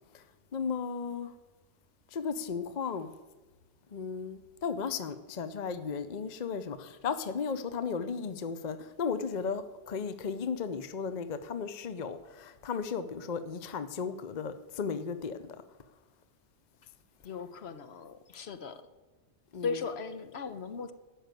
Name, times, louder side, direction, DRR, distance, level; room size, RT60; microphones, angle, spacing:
voice 1, 0.5-1.3 2.1-3.1 3.9-15.4 19.5-19.9, left 6 dB, 45° left, 0.7 m, -35 dB
voice 2, 17.2-18.8 19.6-20.9, left 5 dB, 60° left, 1.1 m, -37 dB
13.0 x 6.6 x 9.1 m
omnidirectional pair, 1.3 m